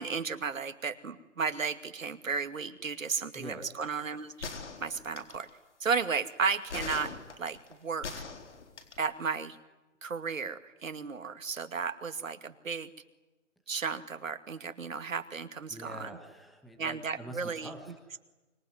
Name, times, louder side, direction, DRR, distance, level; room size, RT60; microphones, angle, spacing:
voice 1, 0.0-4.5 4.8-5.5 5.8-7.1 7.4-8.2 9.0-9.6 10.0-12.9 13.7-16.1 16.8-17.7, right 5 dB, 85° right, 9 dB, 2.5 m, -34 dB
voice 2, 3.3-3.7 15.7-18.2, right 1 dB, ahead, 5 dB, 1.3 m, -45 dB
sound 1, 4.4-5.5 6.7-9.0, left 4 dB, 65° left, 4.5 m, -41 dB
25.5 x 24.0 x 9.6 m, 1.1 s
hypercardioid pair, 160°, 39 cm